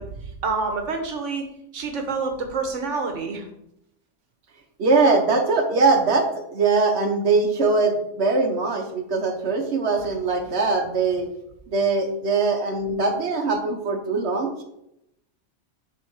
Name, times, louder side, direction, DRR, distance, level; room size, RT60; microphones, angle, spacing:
voice 1, 0.0-1.5 1.7-3.5, right 4 dB, 85° right, 4 dB, 1.4 m, -28 dB
voice 2, 4.8-11.3 11.7-14.6, right 3 dB, 65° right, 2 dB, 1.4 m, -21 dB
7.4 x 3.8 x 6.3 m, 0.79 s
omnidirectional pair, 1.2 m